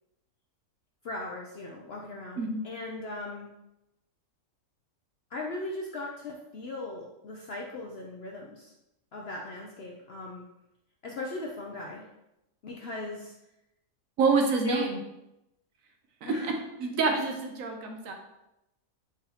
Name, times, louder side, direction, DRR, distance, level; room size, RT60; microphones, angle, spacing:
voice 1, 1.0-3.5 5.3-8.7 9.1-10.4 11.0-12.1 12.6-13.3 14.6-14.9 16.2-16.5, left 2 dB, 65° left, -1 dB, 0.6 m, -38 dB
voice 2, 14.2-15.0 16.2-16.3 16.8-18.1, right 4 dB, 65° right, 3 dB, 1.0 m, -27 dB
4.8 x 2.8 x 4.0 m, 0.88 s
omnidirectional pair, 1.6 m